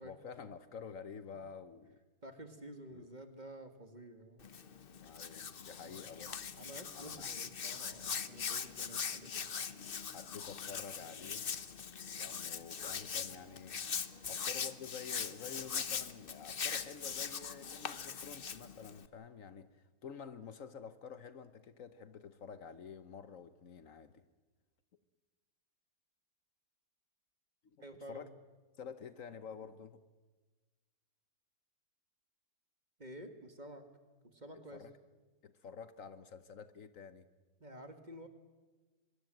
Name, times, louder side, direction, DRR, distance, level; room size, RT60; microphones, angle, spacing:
voice 1, 0.0-2.0 2.9-3.1 4.9-6.4 6.9-7.3 10.1-11.5 12.1-13.8 14.3-24.2 27.6-27.8 28.1-28.3 28.8-30.0 34.7-34.9 35.4-37.3, left 6 dB, 60° left, 1.3 m, -49 dB
voice 2, 2.2-4.5 5.7-6.1 6.6-9.5 14.1-14.3 27.8-28.3 33.0-33.8 34.2-34.8 37.6-38.3, right 1 dB, 30° right, 2.1 m, -51 dB
Hands, 4.4-19.1, left 7 dB, 45° left, 1.0 m, -41 dB
23.5 x 23.0 x 7.8 m
omnidirectional pair, 1.6 m